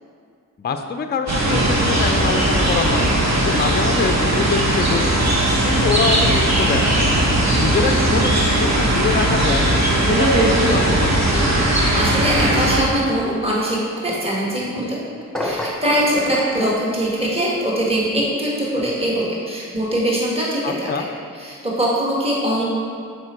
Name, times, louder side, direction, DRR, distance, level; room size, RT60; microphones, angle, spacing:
voice 1, 0.6-5.2 5.6-7.0 7.5-9.6 10.0-11.4 20.6-21.1, left 5 dB, 30° left, 6 dB, 0.4 m, -24 dB
sound 1, 1.3-12.8, right 1 dB, 50° right, 1.3 m, -18 dB
voice 2, 11.9-15.0 15.4-20.9 21.3-22.6, right 1 dB, 15° right, -5 dB, 1.6 m, -22 dB
sound 2, 15.3-16.0, left 1 dB, ahead, 0.8 m, -26 dB
6.5 x 4.4 x 4.4 m, 2.2 s
cardioid pair, 50°, 35 cm